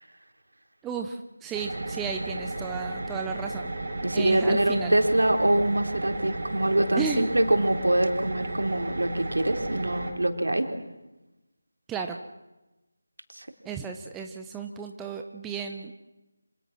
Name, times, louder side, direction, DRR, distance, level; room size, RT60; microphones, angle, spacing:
voice 1, 0.8-3.7 4.1-5.0 7.0-7.3 11.9-12.2 13.6-15.9, right 6 dB, 5° right, 3 dB, 0.8 m, -34 dB
sound 1, 1.5-10.1, right 2 dB, 45° right, 5.4 m, -34 dB
voice 2, 4.0-10.7 13.3-13.5, right 1 dB, 70° right, 4 dB, 3.9 m, -24 dB
28.5 x 26.5 x 6.1 m, 1.0 s
figure-of-eight pair, 160°, 0 cm